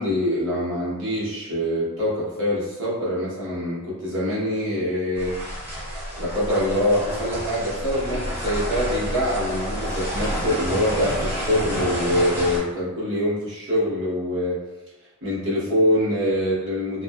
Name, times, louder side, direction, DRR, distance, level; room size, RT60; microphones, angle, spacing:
voice 1, 0.0-5.3 6.2-14.6 15.2-17.0, left 1 dB, 55° right, -7 dB, 1.0 m, -24 dB
sound 1, 5.2-12.6, equal, 10° right, 0.6 m, -29 dB
2.7 x 2.3 x 2.3 m, 1.0 s
head